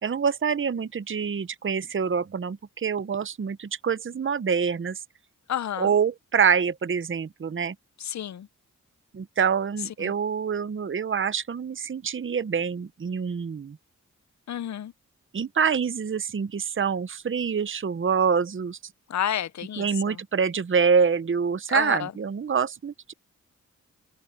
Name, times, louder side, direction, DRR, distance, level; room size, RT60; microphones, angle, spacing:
voice 1, 0.0-5.0 5.8-7.7 9.1-13.8 15.3-18.8 19.8-23.1, right 6 dB, 40° right, 0.7 m, -26 dB
voice 2, 5.5-5.9 8.0-8.5 10.0-10.1 14.5-14.9 19.1-20.2 21.7-22.1, left 10 dB, 60° left, 0.5 m, -30 dB
open air
cardioid pair, 65°, 32 cm